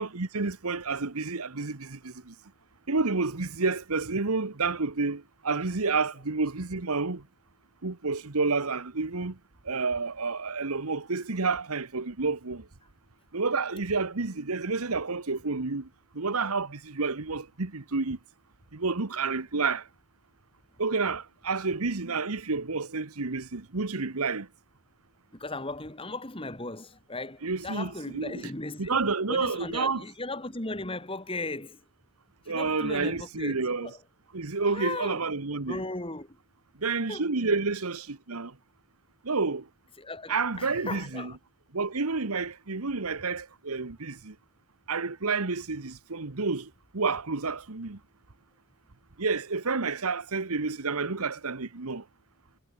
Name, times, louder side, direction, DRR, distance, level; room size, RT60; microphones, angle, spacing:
voice 1, 0.0-2.3 2.9-7.2 7.8-9.3 9.6-12.6 13.3-15.9 16.1-18.2 18.7-19.8 20.8-24.5 27.4-28.4 28.8-30.0 32.5-33.9 34.3-35.8 36.8-38.5 39.2-39.6 40.3-41.3 41.7-44.3 44.9-48.0 49.2-52.0, right 4 dB, 80° right, 1.4 m, -29 dB
voice 2, 25.3-29.0 29.3-31.8 32.4-34.0 34.6-35.2 35.7-36.4 37.1-37.3 40.0-41.4, left 2 dB, 25° left, 3.2 m, -37 dB
head